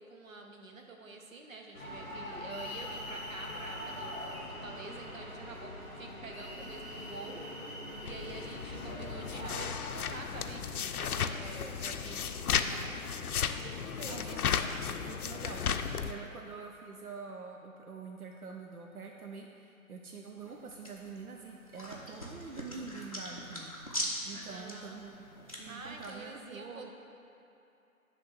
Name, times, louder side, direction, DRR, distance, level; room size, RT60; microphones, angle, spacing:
voice 1, 0.0-7.4 8.0-13.1 13.6-14.5 16.2-16.4 24.5-25.0 25.7-26.9, right 3 dB, 65° right, 2 dB, 1.1 m, -47 dB
sound 1, 1.7-9.8, left 1 dB, 10° right, 0.9 m, -42 dB
sound 2, 8.1-16.1, left 7 dB, 80° left, 0.6 m, -34 dB
voice 2, 14.1-14.5 14.9-23.7 24.3-25.2 25.6-26.9, right 4 dB, 85° right, 1 dB, 0.8 m, -46 dB
sound 3, 20.4-26.1, equal, 25° left, 0.6 m, -42 dB
8.5 x 3.5 x 6.0 m, 2.8 s
hypercardioid pair, 170°, 43 cm